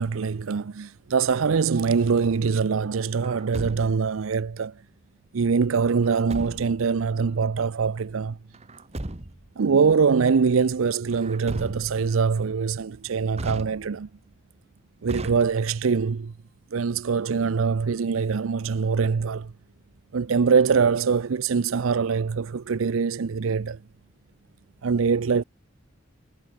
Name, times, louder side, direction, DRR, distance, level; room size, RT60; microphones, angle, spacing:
voice 1, 0.0-4.7 5.3-8.4 9.6-14.1 15.0-16.3 16.7-19.5 20.1-23.8 24.8-25.4, right 5 dB, 85° right, 0.5 m, -23 dB
Truck, 3.2-4.2 6.0-6.9 8.5-9.5 11.1-12.2 13.3-14.2 15.1-15.9, right 1 dB, 30° right, 1.5 m, -36 dB
head